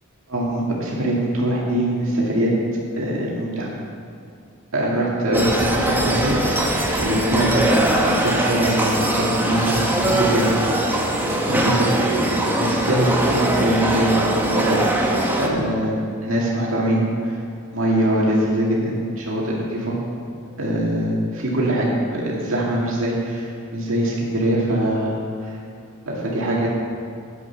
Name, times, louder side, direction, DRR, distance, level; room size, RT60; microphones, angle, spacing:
voice 1, 0.3-2.5 3.0-3.7 4.7-10.5 10.9-11.1 11.5-12.3 12.6-15.9 16.2-17.3 17.7-20.0 20.6-25.2 25.4-25.6 26.1-26.7, right 1 dB, 65° right, -4 dB, 2.2 m, -23 dB
sound 1, 5.3-15.5, right 1 dB, 10° right, 1.1 m, -21 dB
12.0 x 8.3 x 5.8 m, 2.3 s
head